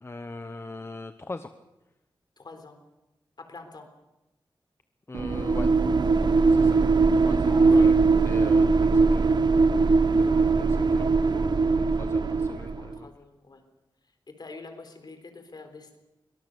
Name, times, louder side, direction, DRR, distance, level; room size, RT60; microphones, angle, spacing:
voice 1, 0.0-1.5 5.1-5.7 6.5-6.8 7.1-7.9 8.2-9.3 9.7-9.9 10.2-13.1, left 3 dB, 30° left, 8 dB, 0.9 m, -40 dB
voice 2, 2.4-2.8 3.4-3.9 7.7-8.0 10.2-10.5 12.8-13.6 14.3-16.0, left 3 dB, 55° left, 7 dB, 3.8 m, -45 dB
sound 1, 5.1-12.9, right 4 dB, 55° right, 0.8 m, -21 dB
23.0 x 19.0 x 6.8 m, 0.99 s
wide cardioid pair, 105°, 9 cm